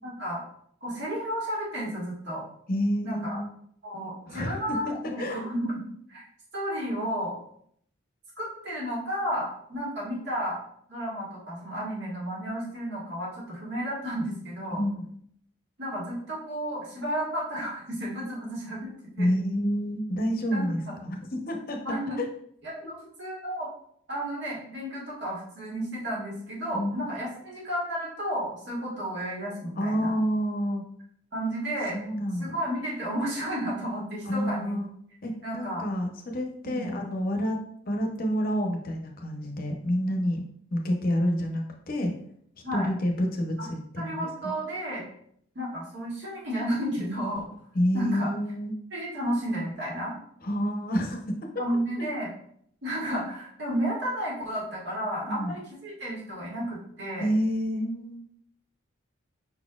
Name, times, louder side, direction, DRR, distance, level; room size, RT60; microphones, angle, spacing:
voice 1, 0.0-0.4 0.8-2.4 3.0-3.4 3.8-6.2 6.5-7.4 8.4-10.6 10.9-14.9 15.8-19.3 20.5-20.8 21.9-22.2 22.6-23.7 24.1-30.2 31.3-32.0 32.4-34.8 35.4-35.9 36.6-36.9 42.6-42.9 43.6-43.7 44.0-45.1 45.6-47.5 47.9-48.3 48.9-50.1 51.6-52.3 52.8-57.3, equal, 55° right, -5 dB, 1.8 m, -32 dB
voice 2, 2.7-3.5 4.3-5.5 14.8-15.0 19.2-21.8 22.8-22.9 26.7-26.9 29.8-30.8 31.9-32.5 34.2-34.9 35.2-37.6 37.9-40.4 40.7-42.1 42.7-44.5 47.7-48.7 50.4-51.5 52.0-52.1 55.2-55.5 57.2-58.2, equal, 45° left, 2 dB, 0.7 m, -28 dB
5.4 x 4.1 x 2.3 m, 0.66 s
head